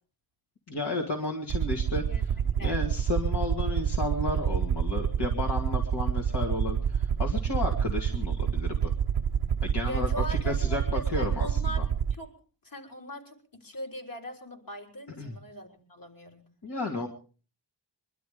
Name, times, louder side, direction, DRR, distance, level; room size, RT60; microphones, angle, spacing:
voice 1, 0.7-2.0 2.6-8.9 9.6-11.8 15.2-15.3 16.6-17.1, left 2 dB, 65° left, 1 dB, 2.4 m, -32 dB
Aircraft, 1.5-12.2, right 8 dB, 55° right, 0.9 m, -28 dB
voice 2, 2.0-2.8 9.8-11.8 12.1-12.3 12.6-16.4, equal, 50° left, 2 dB, 3.9 m, -41 dB
23.0 x 12.0 x 5.1 m, 0.39 s
wide cardioid pair, 125°, 43 cm